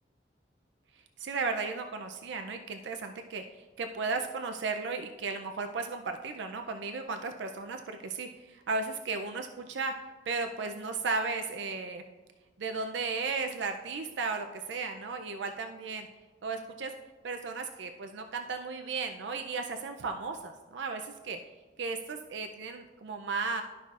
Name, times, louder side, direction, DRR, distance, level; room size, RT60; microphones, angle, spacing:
voice 1, 1.2-9.9 10.3-12.0 12.6-16.1 16.4-17.0 17.2-21.4 21.8-23.6, right 4 dB, 85° right, 5 dB, 0.4 m, -35 dB
12.5 x 5.6 x 2.4 m, 1.3 s
head